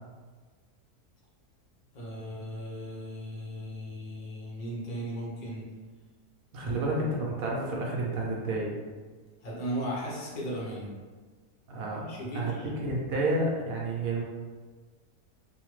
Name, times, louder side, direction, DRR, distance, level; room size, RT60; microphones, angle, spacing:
voice 1, 1.9-5.7 6.6-6.8 9.4-10.9 12.0-12.7, equal, 55° left, -5 dB, 0.5 m, -36 dB
voice 2, 6.5-8.7 11.7-14.2, right 2 dB, 70° right, -3 dB, 1.0 m, -30 dB
3.0 x 2.1 x 3.0 m, 1.4 s
omnidirectional pair, 1.7 m